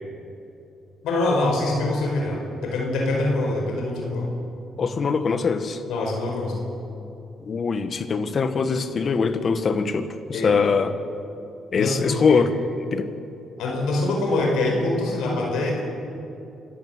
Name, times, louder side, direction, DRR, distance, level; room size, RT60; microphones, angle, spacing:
voice 1, 1.0-4.3 5.9-6.7 10.3-10.6 11.7-12.4 13.6-15.8, left 2 dB, 85° left, 1 dB, 5.0 m, -24 dB
voice 2, 4.8-5.8 7.5-10.9 11.7-12.5 12.9-13.1, left 5 dB, 45° left, 10 dB, 1.5 m, -22 dB
25.5 x 14.0 x 8.0 m, 2.7 s
cardioid pair, 90°, 0 cm